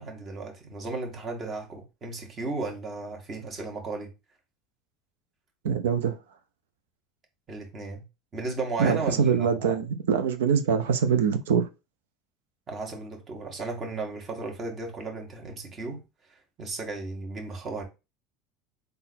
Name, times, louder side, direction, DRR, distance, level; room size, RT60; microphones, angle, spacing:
voice 1, 0.0-4.1 7.5-8.0 8.3-9.8 12.7-16.0 16.6-17.8, right 3 dB, 35° right, 1.6 m, -35 dB
voice 2, 5.6-6.2 8.8-11.7, right 6 dB, 90° right, 0.7 m, -24 dB
3.8 x 2.7 x 4.2 m
supercardioid pair, 95°, 0 cm